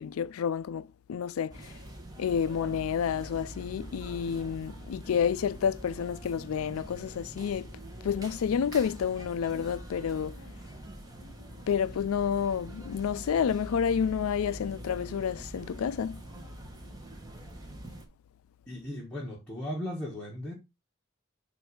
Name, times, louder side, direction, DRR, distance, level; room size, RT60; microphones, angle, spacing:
voice 1, 0.0-1.7 2.2-7.7 8.0-10.4 11.7-16.2, left 7 dB, 85° left, 0.4 m, -30 dB
sound 1, 1.5-18.1, right 1 dB, 20° right, 1.0 m, -44 dB
voice 2, 18.7-20.5, left 1 dB, 5° left, 1.3 m, -36 dB
7.8 x 2.7 x 4.7 m
head